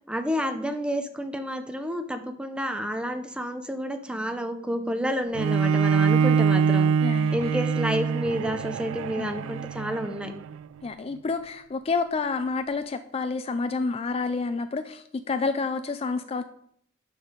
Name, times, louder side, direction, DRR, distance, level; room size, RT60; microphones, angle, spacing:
voice 1, 0.1-6.9 7.3-10.3, equal, 5° right, 6 dB, 0.7 m, -30 dB
Bowed string instrument, 5.3-10.6, right 6 dB, 85° right, 0.3 m, -24 dB
voice 2, 7.0-7.4 9.2-9.4 10.8-16.4, left 4 dB, 30° left, 10 dB, 0.3 m, -29 dB
11.5 x 4.6 x 5.1 m, 0.71 s
head